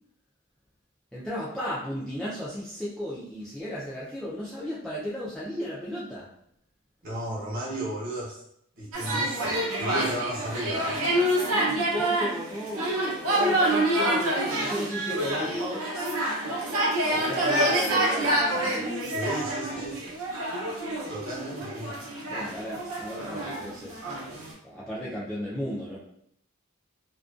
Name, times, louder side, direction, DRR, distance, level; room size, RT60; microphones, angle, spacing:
voice 1, 1.1-6.3 11.5-15.9 17.1-19.0 22.3-24.0 24.6-26.0, equal, 5° left, -9 dB, 0.3 m, -35 dB
voice 2, 7.0-8.4 8.7-11.0 19.0-20.0 21.1-22.0, right 1 dB, 40° right, -6 dB, 0.9 m, -34 dB
sound 1, 8.9-24.5, right 1 dB, 85° right, 0.7 m, -27 dB
2.4 x 2.2 x 2.3 m, 0.71 s
head